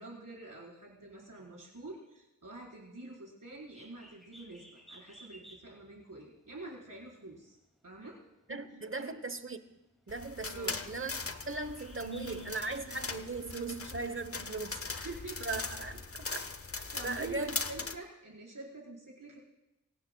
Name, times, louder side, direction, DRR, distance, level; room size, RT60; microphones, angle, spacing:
voice 1, 0.0-7.6 7.8-8.2 9.0-9.1 10.5-10.8 15.0-15.4 16.9-19.4, right 2 dB, 70° right, -4 dB, 4.6 m, -46 dB
Bird, 3.5-13.1, equal, ahead, 2.4 m, -59 dB
voice 2, 8.5-9.6 10.1-15.0 15.4-16.5 17.0-17.5, right 3 dB, 40° right, 11 dB, 1.0 m, -38 dB
sound 1, 10.1-18.0, left 4 dB, 45° left, 0.8 m, -40 dB
24.5 x 17.5 x 2.3 m, 0.98 s
wide cardioid pair, 55°, 32 cm